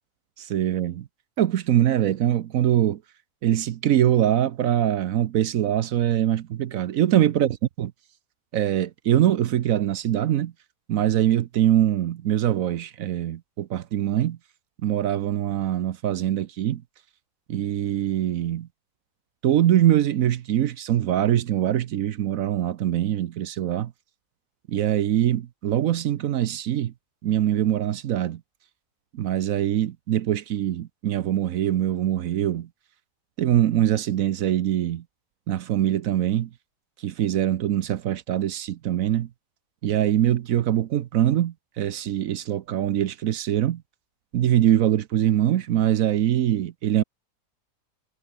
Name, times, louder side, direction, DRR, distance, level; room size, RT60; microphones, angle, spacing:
voice 1, 0.4-1.1 1.4-3.0 3.4-7.9 8.5-10.5 10.9-14.4 14.8-16.8 17.5-18.7 19.4-23.9 24.7-26.9 27.2-28.4 29.1-32.7 33.4-35.0 35.5-36.5 37.0-39.3 39.8-43.8 44.3-47.0, right 11 dB, 65° right, 1.0 m, -23 dB
omnidirectional pair, 1.7 m